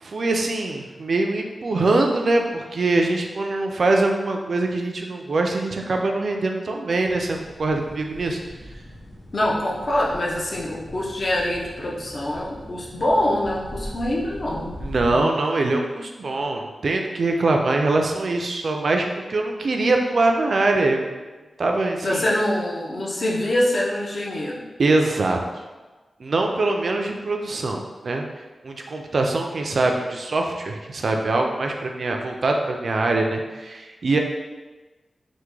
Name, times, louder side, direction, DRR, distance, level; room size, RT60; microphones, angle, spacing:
voice 1, 0.0-8.4 14.8-21.1 21.6-22.2 24.8-25.6 26.2-28.3 28.6-34.2, right 2 dB, 55° right, 2 dB, 0.3 m, -23 dB
sound 1, 7.0-15.2, equal, 90° left, 0.6 m, -40 dB
voice 2, 9.3-14.8 15.1-15.3 22.0-24.6, left 1 dB, 40° left, -3 dB, 0.5 m, -24 dB
3.4 x 2.1 x 3.1 m, 1.2 s
wide cardioid pair, 155°, 0 cm